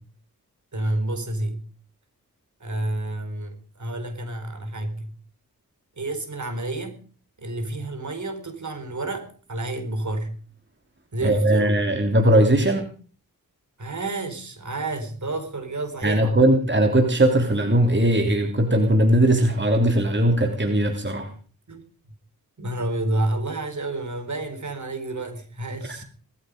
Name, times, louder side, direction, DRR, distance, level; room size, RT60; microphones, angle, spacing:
voice 1, 0.7-1.6 2.6-5.1 6.0-7.0 7.4-10.3 11.1-11.8 13.8-16.4 21.7-21.8 22.6-26.0, right 2 dB, 55° right, 4.4 m, -29 dB
voice 2, 11.2-12.9 16.0-21.3, right 1 dB, 30° right, 3.3 m, -19 dB
19.5 x 13.5 x 5.3 m
cardioid pair, 50°, 36 cm